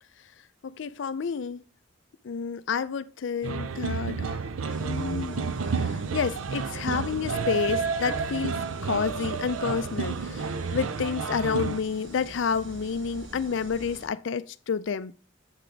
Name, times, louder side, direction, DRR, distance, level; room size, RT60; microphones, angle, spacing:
voice 1, 0.6-1.6 2.2-4.4 4.8-5.4 5.7-15.1, left 6 dB, 65° left, 0.4 m, -30 dB
sound 1, 3.4-11.8, right 5 dB, 90° right, 0.6 m, -30 dB
sound 2, 4.7-14.1, right 1 dB, 70° right, 1.7 m, -45 dB
8.0 x 6.1 x 3.3 m
head